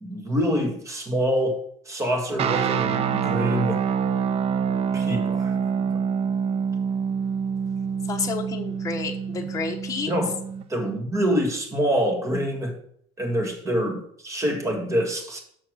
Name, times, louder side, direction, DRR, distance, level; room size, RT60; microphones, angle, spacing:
voice 1, 0.0-3.8 4.9-6.0 10.1-10.3 10.7-12.8 13.2-15.4, equal, 20° right, 4 dB, 1.9 m, -26 dB
sound 1, 2.4-10.6, right 7 dB, 45° right, 0.7 m, -26 dB
voice 2, 8.1-10.1, left 5 dB, 20° left, 0 dB, 1.2 m, -30 dB
6.6 x 5.6 x 6.3 m, 0.65 s
cardioid pair, 125°, 15 cm